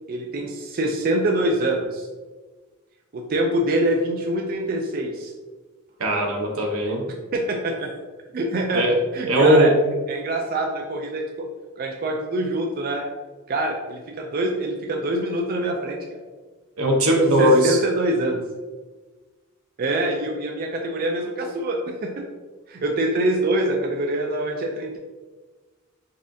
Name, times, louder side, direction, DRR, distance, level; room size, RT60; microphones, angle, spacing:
voice 1, 0.1-2.1 3.1-5.3 7.3-7.9 8.3-8.8 9.1-9.7 10.1-11.5 11.8-13.0 13.5-16.0 17.2-18.4 19.8-22.2 22.7-25.0, right 1 dB, 45° right, 1 dB, 0.4 m, -25 dB
voice 2, 6.0-7.0 8.7-9.0 9.3-9.7 16.8-17.8, equal, 85° right, 0 dB, 0.8 m, -18 dB
4.1 x 3.6 x 2.6 m, 1.3 s
head